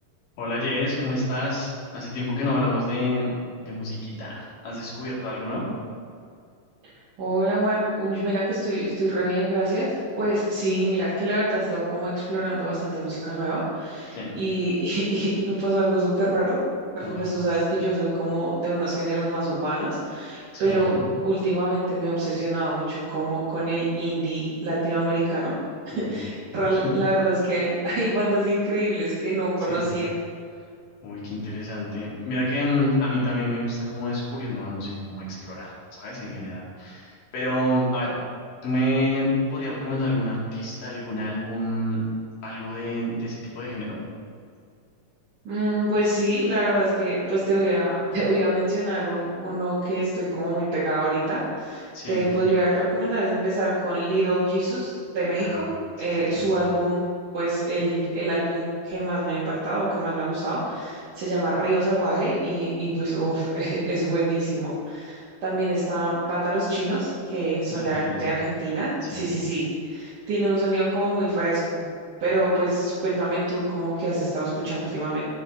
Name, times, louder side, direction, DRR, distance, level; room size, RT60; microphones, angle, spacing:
voice 1, 0.4-5.7 14.1-14.3 17.0-17.2 20.5-21.0 25.9-26.2 26.8-26.9 29.7-29.8 31.0-38.2 38.6-42.0 42.4-44.0 51.9-52.2 55.4-55.6 56.0-56.5 67.7-68.3 69.0-69.2, left 1 dB, 75° left, -7 dB, 4.1 m, -28 dB
voice 2, 7.2-16.6 17.0-20.9 21.2-25.5 26.0-30.1 45.5-55.7 56.0-57.0 57.3-71.8 72.2-75.2, right 1 dB, 70° right, -12 dB, 3.7 m, -25 dB
15.0 x 5.0 x 3.9 m, 2.3 s
omnidirectional pair, 3.8 m